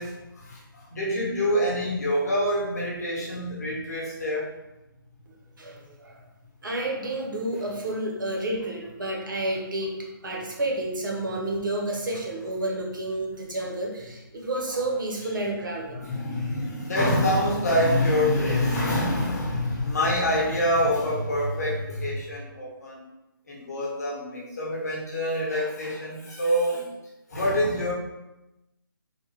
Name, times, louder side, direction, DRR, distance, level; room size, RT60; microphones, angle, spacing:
voice 1, 0.0-4.5 15.9-23.0 23.5-26.9 27.3-27.9, left 1 dB, 45° left, -4 dB, 0.9 m, -26 dB
voice 2, 5.6-6.1 6.6-16.1, right 1 dB, 60° right, -1 dB, 0.7 m, -30 dB
3.4 x 2.0 x 2.8 m, 0.95 s
hypercardioid pair, 175°, 12 cm